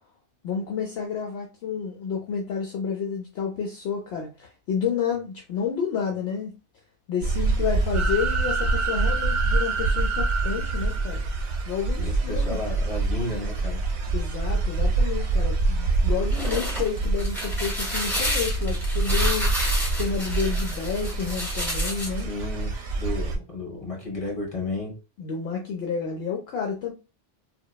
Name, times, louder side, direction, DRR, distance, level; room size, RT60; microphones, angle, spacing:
voice 1, 0.4-6.5 7.1-11.2 11.7-12.6 14.1-19.5 20.0-22.3 25.2-26.9, left 6 dB, 70° left, 0.8 m, -30 dB
sound 1, 7.2-23.4, right 3 dB, 70° right, 0.8 m, -26 dB
sound 2, 7.9-11.7, right 5 dB, 45° right, 0.4 m, -29 dB
voice 2, 12.0-13.8 22.3-24.9, left 2 dB, 30° left, 1.2 m, -33 dB
sound 3, 16.1-22.2, equal, ahead, 1.1 m, -31 dB
2.9 x 2.2 x 2.2 m
omnidirectional pair, 1.2 m